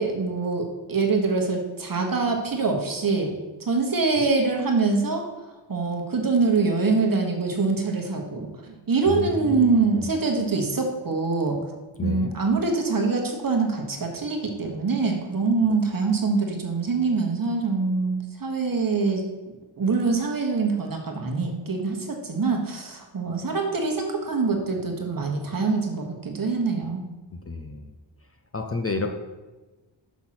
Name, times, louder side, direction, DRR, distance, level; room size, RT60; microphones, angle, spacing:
voice 1, 0.0-3.3 3.6-5.3 5.7-11.6 12.0-19.2 19.8-27.0, right 4 dB, 45° right, 2 dB, 1.4 m, -24 dB
voice 2, 9.1-10.1 12.0-12.3 27.5-27.8 28.5-29.1, left 3 dB, 30° left, 5 dB, 0.6 m, -30 dB
6.2 x 5.8 x 5.9 m, 1.2 s
wide cardioid pair, 110°, 47 cm